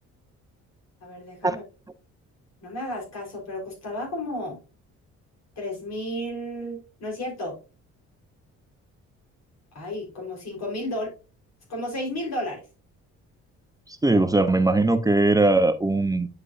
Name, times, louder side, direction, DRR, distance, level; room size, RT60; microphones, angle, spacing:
voice 1, 1.0-1.6 2.6-4.6 5.6-7.6 9.7-11.1 11.7-12.6, left 1 dB, 60° left, 0 dB, 4.0 m, -32 dB
voice 2, 14.0-16.3, right 2 dB, 10° right, 9 dB, 0.7 m, -20 dB
9.5 x 4.9 x 2.5 m, 0.31 s
cardioid pair, 90°, 30 cm